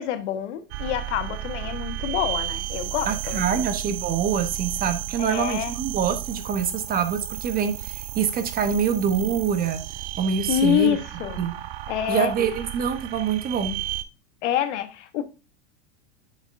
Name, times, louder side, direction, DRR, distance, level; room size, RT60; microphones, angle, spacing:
voice 1, 0.0-3.7 5.2-5.7 10.5-11.4 11.9-12.3 14.4-15.2, left 10 dB, 70° left, 1.2 m, -26 dB
sound 1, 0.7-14.0, right 14 dB, 60° right, 0.7 m, -33 dB
voice 2, 3.1-9.8 10.2-11.0 11.4-11.5 12.1-13.8, right 7 dB, 25° right, 0.8 m, -25 dB
8.2 x 6.4 x 2.5 m
supercardioid pair, 135°, 36 cm